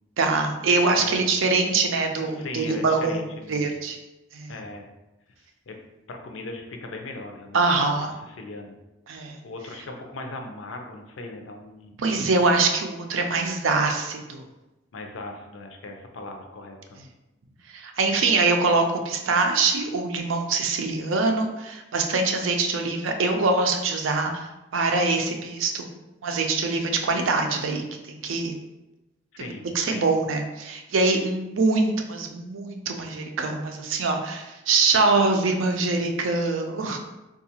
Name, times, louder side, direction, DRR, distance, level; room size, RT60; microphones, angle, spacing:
voice 1, 0.2-3.2 3.5-4.0 4.3-4.5 7.5-8.1 9.1-9.4 12.0-14.4 17.7-25.9 26.2-28.6 29.7-37.0, right 3 dB, 85° right, 4 dB, 0.5 m, -24 dB
voice 2, 0.9-1.2 2.2-3.7 4.5-4.9 5.7-5.8 6.1-7.9 8.4-8.8 9.4-12.0 14.9-17.0 29.4-29.6 29.9-30.1 36.4-36.5, left 2 dB, 75° left, 3 dB, 0.5 m, -38 dB
3.7 x 2.3 x 2.8 m, 1.0 s
head